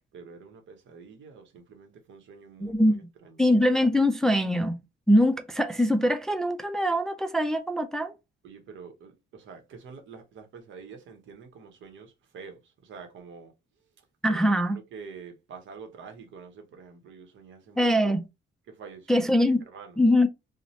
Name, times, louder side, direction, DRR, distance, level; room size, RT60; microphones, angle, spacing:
voice 1, 0.1-3.0 3.2-3.4 8.4-13.5 14.3-17.9 18.7-20.0, right 5 dB, 70° right, 0.8 m, -47 dB
voice 2, 2.6-3.0 3.4-4.8 5.1-8.1 14.2-14.8 17.8-18.3 19.1-19.6 20.0-20.3, left 1 dB, ahead, 0.3 m, -23 dB
2.7 x 2.0 x 3.0 m
cardioid pair, 90°, 20 cm